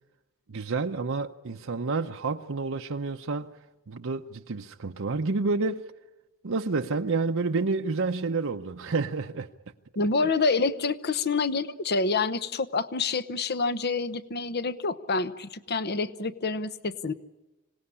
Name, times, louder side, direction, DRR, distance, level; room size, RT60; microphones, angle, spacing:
voice 1, 0.5-3.5 3.9-5.8 6.4-9.5, right 3 dB, 65° right, 0.8 m, -29 dB
voice 2, 10.0-17.1, left 4 dB, 50° left, 1.0 m, -27 dB
26.0 x 18.5 x 9.8 m
head